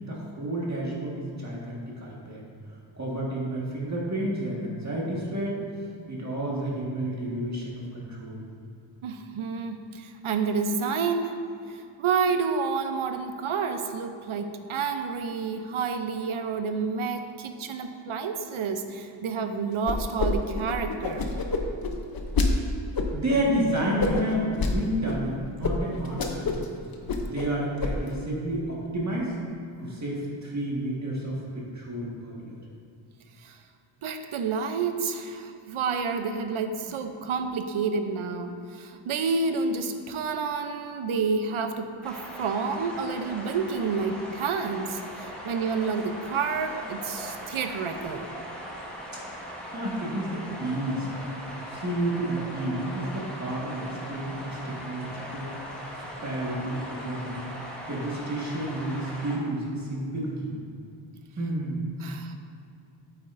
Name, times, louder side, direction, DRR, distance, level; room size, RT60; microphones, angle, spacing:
voice 1, 0.0-2.4 3.0-5.6 6.1-8.5 23.1-26.7 27.2-29.4 29.8-32.6 49.7-51.1 51.7-55.5 56.0-57.4 57.9-60.5 61.4-61.9, right 1 dB, 35° right, -4 dB, 1.6 m, -30 dB
voice 2, 9.0-11.4 11.7-21.3 33.4-33.6 34.0-48.3 62.0-62.4, right 5 dB, 90° right, 7 dB, 0.7 m, -29 dB
sound 1, 19.9-20.3 20.5-22.5 23.0-23.4 24.0-24.7 25.1-25.2 25.6-25.7 26.0-26.7 26.9-27.5 27.8-28.2, left 3 dB, 50° left, 0.7 m, -27 dB
sound 2, 42.0-59.4, equal, ahead, 1.5 m, -40 dB
8.8 x 8.2 x 2.6 m, 2.6 s
wide cardioid pair, 140°, 48 cm